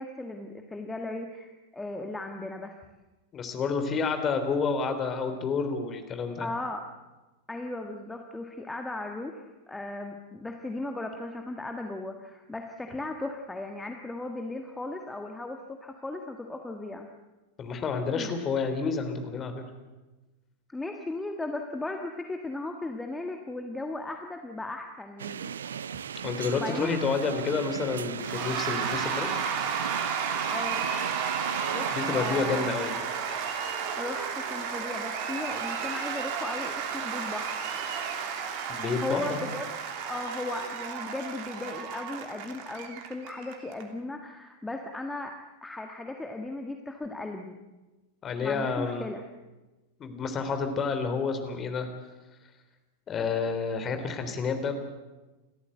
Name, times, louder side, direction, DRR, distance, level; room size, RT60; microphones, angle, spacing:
voice 1, 0.0-2.7 6.4-6.8 7.5-17.1 18.2-18.4 20.7-25.5 26.5-27.0 30.5-31.0 31.5-32.7 34.0-37.7 39.0-39.7 40.0-47.6 48.4-49.2, left 2 dB, 10° left, 4 dB, 1.6 m, -37 dB
voice 2, 3.3-6.5 17.6-19.6 26.2-29.3 31.9-33.0 38.7-39.4 48.2-49.1 50.0-51.9 53.1-54.7, left 5 dB, 25° left, 7 dB, 3.4 m, -29 dB
sound 1, 25.2-32.4, right 8 dB, 65° right, 0.6 m, -37 dB
Cheering / Applause / Crowd, 28.2-43.8, right 7 dB, 45° right, 2.9 m, -33 dB
29.5 x 14.0 x 8.0 m, 1.1 s
figure-of-eight pair, 90°, 0 cm